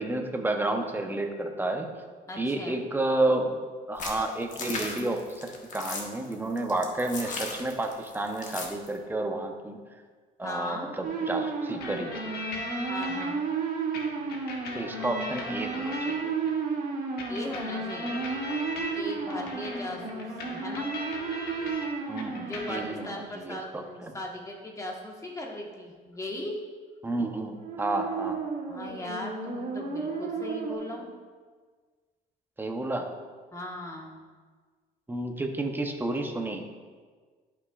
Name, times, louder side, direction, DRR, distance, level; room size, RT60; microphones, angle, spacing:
voice 1, 0.0-1.9 2.4-3.6 3.9-9.8 10.4-12.1 14.7-16.3 19.3-19.5 22.1-24.2 27.0-28.4 32.6-33.1 35.1-36.6, right 2 dB, 10° right, 4 dB, 0.8 m, -31 dB
voice 2, 2.3-2.8 10.4-10.9 12.9-13.4 17.3-18.2 18.9-20.9 22.4-26.6 28.7-31.1 33.5-34.2, left 1 dB, 20° left, -1 dB, 1.4 m, -38 dB
sound 1, 4.0-8.9, left 3 dB, 50° left, 1.3 m, -36 dB
sound 2, 11.0-23.4 27.5-30.7, right 4 dB, 55° right, 1.2 m, -33 dB
sound 3, 11.8-13.3 13.9-16.5 17.2-21.9 22.2-23.1, left 1 dB, 70° left, 1.3 m, -39 dB
11.5 x 5.7 x 2.4 m, 1.5 s
cardioid pair, 110°, 17 cm